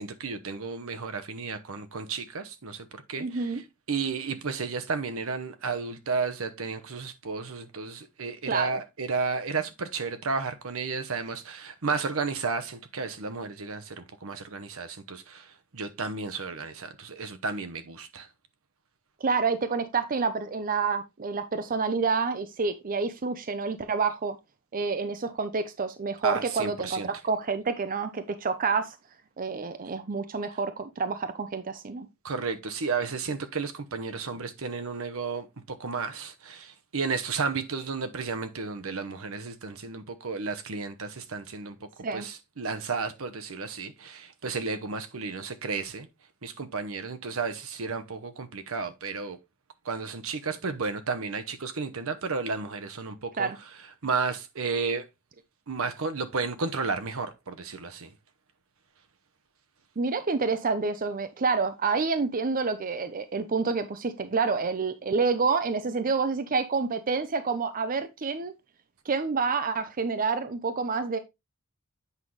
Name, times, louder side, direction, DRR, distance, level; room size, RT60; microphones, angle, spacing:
voice 1, 0.0-3.6 3.9-15.5 15.7-18.3 26.2-27.1 32.2-41.8 42.1-46.1 46.4-49.4 49.8-53.5 54.0-55.1 55.7-58.1, right 4 dB, 70° right, 0.9 m, -32 dB
voice 2, 3.2-3.6 8.5-8.8 19.2-24.4 24.7-29.0 29.4-32.1 42.0-42.3 53.4-53.6 60.0-68.5 69.1-71.2, right 4 dB, 40° right, 0.6 m, -28 dB
8.3 x 5.5 x 3.2 m
head